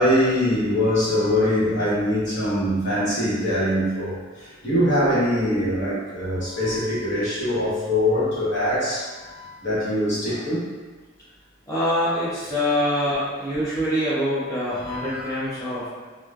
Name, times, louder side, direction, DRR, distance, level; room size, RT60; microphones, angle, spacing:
voice 1, 0.0-4.1 4.6-10.6 14.8-15.2, equal, 65° left, -10 dB, 1.1 m, -23 dB
voice 2, 11.7-15.9, equal, 15° left, -11 dB, 0.6 m, -24 dB
3.0 x 2.1 x 2.4 m, 1.4 s
head